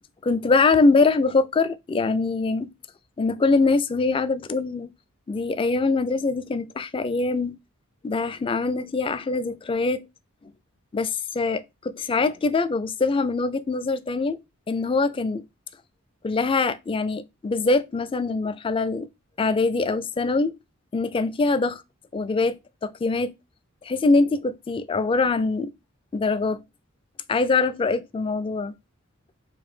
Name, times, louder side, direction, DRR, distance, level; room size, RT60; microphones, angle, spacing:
voice 1, 0.2-2.7 3.2-4.9 5.3-7.6 8.0-10.0 10.9-14.4 14.7-15.4 16.2-19.1 19.4-20.5 20.9-21.8 22.1-23.3 23.8-25.7 26.1-26.6 27.3-28.7, left 3 dB, 25° left, 0.3 m, -23 dB
4.5 x 2.6 x 4.3 m
head